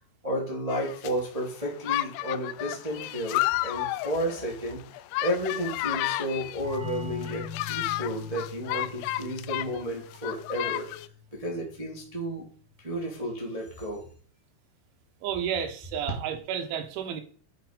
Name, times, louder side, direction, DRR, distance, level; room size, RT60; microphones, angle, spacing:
voice 1, 0.2-4.8 5.2-10.9 11.3-12.5 12.8-14.0, equal, 10° right, -2 dB, 1.6 m, -32 dB
sound 1, 0.7-1.1 1.8-6.8 7.2-9.8 10.1-11.1, left 17 dB, 85° left, 2.8 m, -32 dB
sound 2, 6.6-12.1, left 5 dB, 40° right, 5.0 m, -42 dB
voice 2, 15.2-17.2, right 8 dB, 80° right, 5 dB, 3.9 m, -31 dB
9.9 x 7.5 x 5.2 m, 0.43 s
omnidirectional pair, 5.5 m